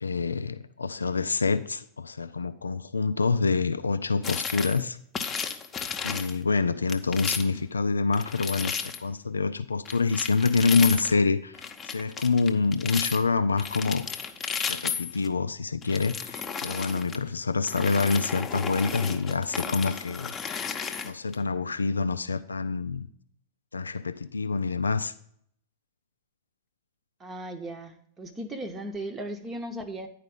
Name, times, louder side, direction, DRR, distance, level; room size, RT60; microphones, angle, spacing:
voice 1, 0.0-5.0 6.0-14.1 14.6-20.3 21.0-23.1 23.7-25.1, left 4 dB, 75° left, 12 dB, 0.3 m, -26 dB
sound 1, 4.2-4.8 5.1-6.4 6.9-7.6 8.1-9.0 9.9-11.2 11.5-13.2 13.6-15.3 15.8-17.2 17.6-21.3, left 6 dB, 20° left, 0.8 m, -34 dB
voice 2, 27.2-30.1, right 1 dB, 20° right, 7 dB, 0.9 m, -37 dB
10.0 x 4.8 x 5.1 m, 0.68 s
figure-of-eight pair, 90°, 0 cm